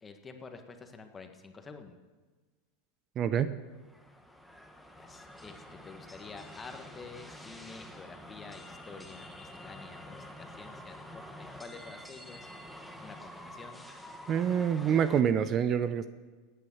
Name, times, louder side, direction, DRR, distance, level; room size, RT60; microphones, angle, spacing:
voice 1, 0.0-2.0 5.0-11.2 11.6-12.5 13.0-13.8, left 4 dB, 20° left, 6 dB, 1.7 m, -48 dB
voice 2, 3.2-3.5 14.3-16.1, right 8 dB, 35° right, 13 dB, 0.7 m, -26 dB
sound 1, 3.7-15.2, left 1 dB, ahead, 1.5 m, -48 dB
17.0 x 9.3 x 7.3 m, 1.4 s
supercardioid pair, 115°, 0 cm